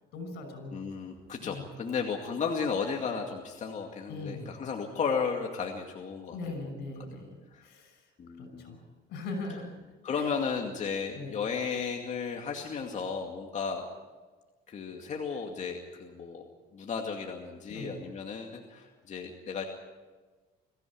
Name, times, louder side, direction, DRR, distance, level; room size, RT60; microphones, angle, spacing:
voice 1, 0.1-0.8 1.4-1.7 4.1-4.5 6.3-7.4 7.6-8.0 8.3-8.8 9.1-9.8 10.1-10.3 11.1-11.3 17.7-18.0, left 3 dB, 80° left, 7 dB, 6.2 m, -40 dB
voice 2, 0.7-6.4 7.5-7.7 8.2-8.7 10.0-14.0 14.7-16.5 16.7-19.6, left 5 dB, 45° left, 2 dB, 2.3 m, -34 dB
23.5 x 15.0 x 8.8 m, 1.3 s
cardioid pair, 110°, 17 cm